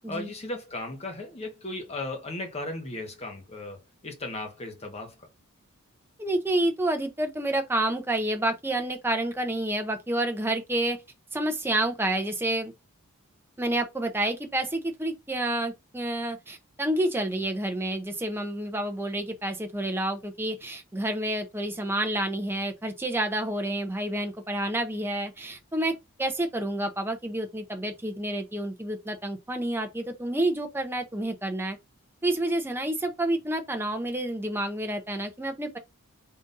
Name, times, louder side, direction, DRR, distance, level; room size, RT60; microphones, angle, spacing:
voice 1, 0.1-5.3, left 2 dB, 30° left, 1.0 m, -36 dB
voice 2, 6.2-11.0 11.3-12.7 13.6-31.8 32.2-35.8, right 1 dB, 10° right, 0.6 m, -29 dB
3.8 x 2.5 x 3.9 m
head